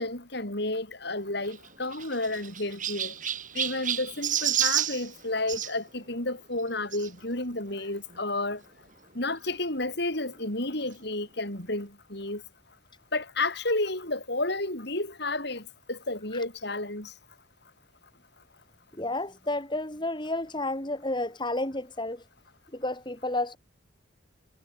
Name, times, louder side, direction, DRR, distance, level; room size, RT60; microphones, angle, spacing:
voice 1, 0.0-3.1 3.5-8.6 9.1-12.4 13.1-17.1, left 2 dB, 55° left, 5.9 m, -31 dB
Chirp tweet, 1.4-5.7 6.9-7.1 7.8-7.9 8.1-8.2 9.5-9.6, right 10 dB, 40° right, 4.2 m, -30 dB
voice 2, 19.0-22.2 22.7-23.6, left 2 dB, 25° left, 4.4 m, -31 dB
head